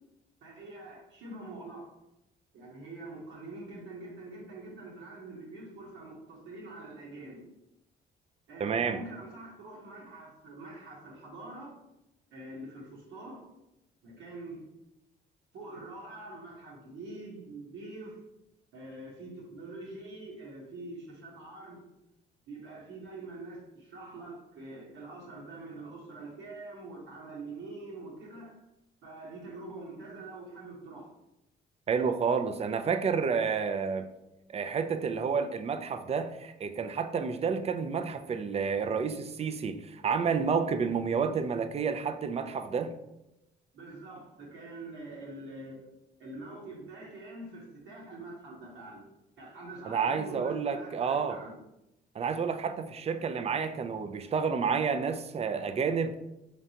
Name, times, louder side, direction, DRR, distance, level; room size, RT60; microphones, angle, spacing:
voice 1, 0.4-2.0 2.5-7.4 8.5-11.8 12.3-13.5 14.0-14.7 15.5-18.2 18.7-21.9 22.5-28.6 29.0-31.1 43.7-45.8 46.2-49.0 49.4-51.5, right 2 dB, 80° right, -4 dB, 1.1 m, -45 dB
voice 2, 8.6-9.0 31.9-34.1 34.5-42.9 49.9-51.4 52.1-56.1, right 6 dB, 30° right, 8 dB, 0.4 m, -30 dB
3.7 x 3.3 x 2.8 m, 0.90 s
cardioid pair, 90°, 20 cm